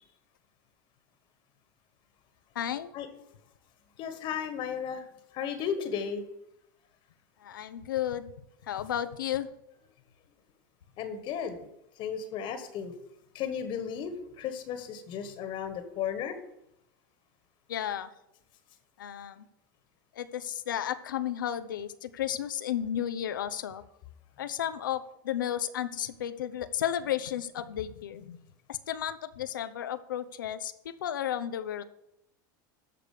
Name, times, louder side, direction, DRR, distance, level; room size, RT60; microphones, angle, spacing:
voice 1, 2.5-2.9 7.4-8.3 8.6-9.5 17.7-18.1 19.0-19.5 20.1-23.8 24.4-28.4 28.7-31.8, left 10 dB, 85° left, 13 dB, 0.7 m, -33 dB
voice 2, 4.0-5.0 5.3-6.2 11.0-11.6 12.0-12.9 13.3-16.4, left 7 dB, 50° left, 9 dB, 1.6 m, -34 dB
13.0 x 4.9 x 6.7 m, 0.83 s
hypercardioid pair, 100°, 10 cm